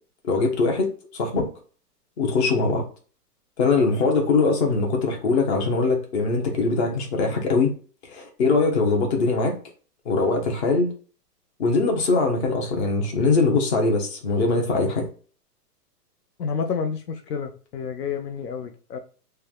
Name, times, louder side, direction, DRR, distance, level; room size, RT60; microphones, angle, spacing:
voice 1, 0.2-1.5 2.2-2.8 3.6-7.7 8.0-9.6 10.0-10.9 11.6-15.1, left 3 dB, 40° left, 0.9 m, -22 dB
voice 2, 16.4-19.0, left 6 dB, 75° left, 0.6 m, -29 dB
3.2 x 2.3 x 2.4 m
hypercardioid pair, 160°, 49 cm